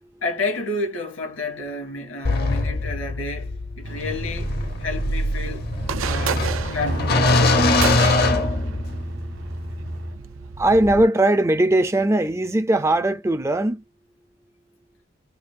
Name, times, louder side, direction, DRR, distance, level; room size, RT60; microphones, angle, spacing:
voice 1, 0.2-5.7 6.0-7.3, left 2 dB, 85° left, 3.2 m, -30 dB
sound 1, 2.3-9.2, left 2 dB, 50° left, 0.7 m, -22 dB
sound 2, 3.8-10.2, equal, 65° right, 1.2 m, -32 dB
sound 3, 5.7-11.0, right 6 dB, 80° right, 0.5 m, -32 dB
voice 2, 7.6-9.6 9.9-13.8, right 1 dB, 15° right, 0.4 m, -22 dB
5.2 x 2.5 x 2.5 m
head